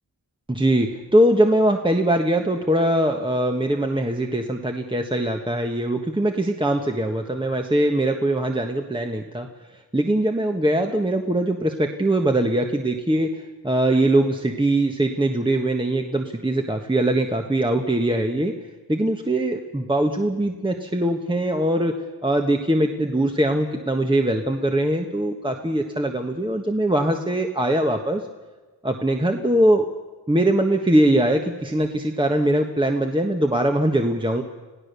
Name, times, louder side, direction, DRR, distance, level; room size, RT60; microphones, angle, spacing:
voice 1, 0.5-9.5 9.9-18.5 18.9-21.9 22.2-28.2 28.8-29.9 30.3-34.4, right 1 dB, 10° right, 3 dB, 1.4 m, -22 dB
27.0 x 16.5 x 7.0 m, 1.3 s
cardioid pair, 70°, 39 cm